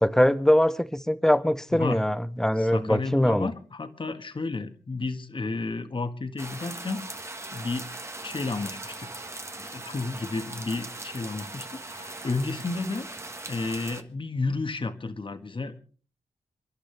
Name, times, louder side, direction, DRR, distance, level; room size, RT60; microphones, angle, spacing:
voice 1, 0.0-3.5, equal, 5° left, 0.9 m, -22 dB
voice 2, 1.7-2.1 2.6-7.9 8.2-9.1 9.6-13.1 13.5-15.8, left 3 dB, 40° left, 1.7 m, -32 dB
sound 1, 6.4-14.0, right 2 dB, 20° right, 1.4 m, -40 dB
sound 2, 6.5-12.7, right 4 dB, 85° right, 3.2 m, -51 dB
27.5 x 11.5 x 3.4 m
cardioid pair, 70°, 13 cm